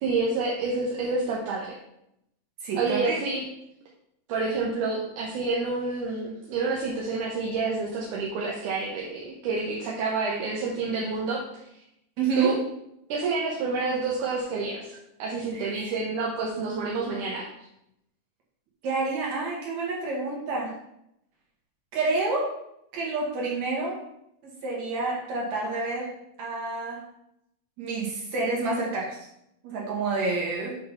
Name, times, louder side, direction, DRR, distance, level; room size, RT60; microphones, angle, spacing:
voice 1, 0.0-1.7 2.8-3.4 4.3-11.4 12.4-12.6 13.1-17.5, right 3 dB, 75° right, -3 dB, 2.5 m, -28 dB
voice 2, 2.6-3.2 12.2-12.6 15.5-15.9 18.8-20.7 21.9-22.6 22.9-24.0 24.4-26.1 26.4-27.0 27.8-29.2 29.6-30.8, right 3 dB, 60° right, -3 dB, 3.2 m, -28 dB
7.6 x 4.1 x 5.8 m, 0.80 s
omnidirectional pair, 3.8 m